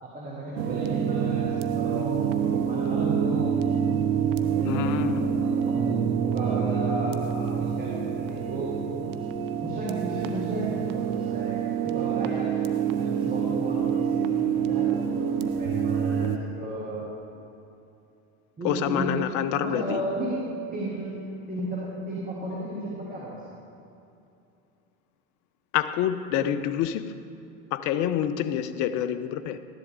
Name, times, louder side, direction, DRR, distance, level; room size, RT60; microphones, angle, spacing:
voice 1, 0.0-3.5 4.4-8.7 9.6-12.5 12.9-17.1 18.6-19.2 19.6-23.4, right 1 dB, 20° right, -5 dB, 2.2 m, -34 dB
sound 1, 0.6-16.4, right 7 dB, 45° right, 0.8 m, -26 dB
voice 2, 4.6-5.3 18.6-20.0 25.7-27.1 27.7-29.6, left 10 dB, 45° left, 13 dB, 0.6 m, -27 dB
13.0 x 10.5 x 3.7 m, 2.6 s
hypercardioid pair, 85°, 43 cm